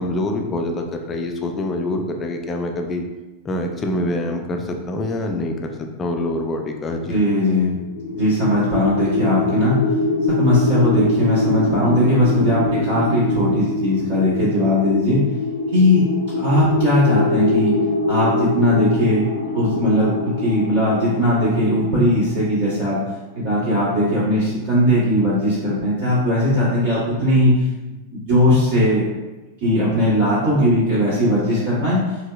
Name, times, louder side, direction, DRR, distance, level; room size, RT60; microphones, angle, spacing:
voice 1, 0.0-3.0 3.4-7.2, left 1 dB, 20° left, 3 dB, 0.4 m, -25 dB
voice 2, 7.1-7.7 8.1-9.8 10.3-15.2 15.7-16.0 16.3-17.7 18.1-19.2 19.5-23.0 23.3-27.5 28.1-29.0 29.6-32.0, left 1 dB, 45° right, -13 dB, 1.4 m, -18 dB
sound 1, 7.7-22.8, left 2 dB, 85° left, 0.4 m, -24 dB
4.3 x 2.0 x 2.3 m, 1.1 s
figure-of-eight pair, 90°, 0 cm